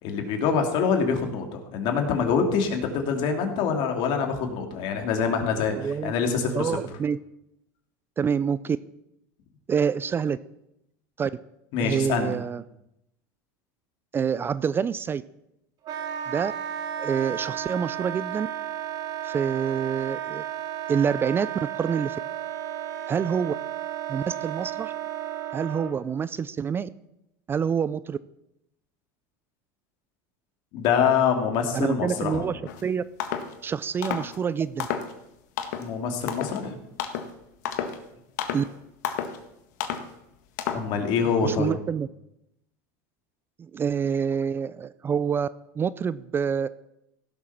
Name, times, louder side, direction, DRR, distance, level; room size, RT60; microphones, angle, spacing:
voice 1, 0.0-6.8 11.7-12.3 30.7-32.5 35.8-36.8 40.7-41.8, left 6 dB, 55° left, 4 dB, 2.6 m, -25 dB
voice 2, 5.8-6.1 6.5-7.2 8.2-8.8 9.7-10.4 11.2-11.3 11.8-12.6 14.1-15.2 16.3-16.5 17.0-18.5 19.2-20.4 20.9-21.5 21.8-22.2 23.1-23.5 24.1-24.9 25.5-26.9 27.5-28.2 31.7-33.0 33.6-34.9 38.5-38.7 41.4-42.1 43.6-45.5 45.8-46.7, right 7 dB, 25° right, 17 dB, 0.4 m, -27 dB
Wind instrument woodwind instrument, 15.8-26.0, right 10 dB, 45° right, 3.8 m, -33 dB
sound 1, 32.7-32.8 33.2-33.5 34.0-34.4 34.8-35.2 35.6-35.9 36.3-36.6 37.0-37.3 37.7-38.0 38.4-38.7 39.0-39.4 39.8-40.1 40.6-40.9, left 8 dB, 75° left, 1.6 m, -31 dB
16.0 x 7.2 x 5.9 m, 0.83 s
supercardioid pair, 115°, 9 cm